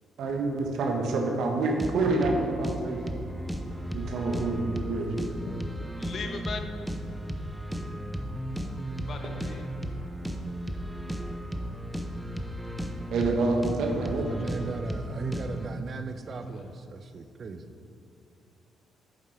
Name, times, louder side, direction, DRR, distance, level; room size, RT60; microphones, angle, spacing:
voice 1, 0.2-3.2 3.9-5.3 13.1-14.3, right 3 dB, 75° right, 2 dB, 1.2 m, -27 dB
sound 1, 1.6-15.7, equal, 5° right, 0.7 m, -35 dB
voice 2, 6.0-6.7 9.1-9.7 14.3-14.8 16.3-16.6, left 4 dB, 55° left, 5 dB, 1.0 m, -39 dB
voice 3, 13.9-17.7, right 3 dB, 45° right, 9 dB, 0.6 m, -37 dB
8.4 x 7.4 x 4.4 m, 2.5 s
cardioid pair, 90°, 0 cm